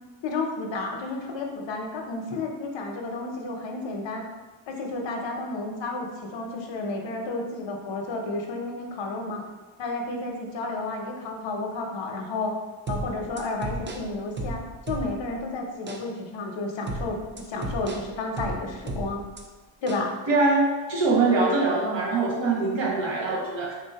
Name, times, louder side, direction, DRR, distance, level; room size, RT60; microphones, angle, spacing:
voice 1, 0.2-4.3 4.7-9.4 9.8-12.5 12.9-19.2 19.8-20.1, left 3 dB, 65° left, 2 dB, 0.8 m, -31 dB
sound 1, 12.9-15.4 15.9-16.1 16.9-19.4 19.9-20.1, right 2 dB, 25° right, 0.3 m, -34 dB
voice 2, 20.3-23.7, right 3 dB, 65° right, -3 dB, 1.2 m, -23 dB
3.5 x 2.7 x 4.5 m, 1.3 s
wide cardioid pair, 150°, 47 cm